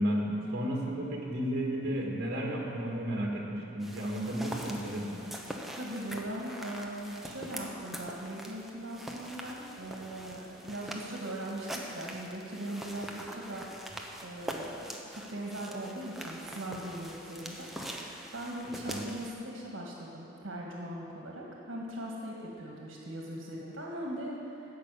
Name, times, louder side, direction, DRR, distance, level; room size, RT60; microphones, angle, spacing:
voice 1, 0.0-5.2 18.8-19.0, equal, 55° right, -1 dB, 1.7 m, -33 dB
sound 1, 3.8-19.3, equal, ahead, 0.8 m, -43 dB
voice 2, 5.8-13.7 14.2-24.6, right 1 dB, 70° right, -2 dB, 1.7 m, -40 dB
12.5 x 5.7 x 8.2 m, 2.9 s
head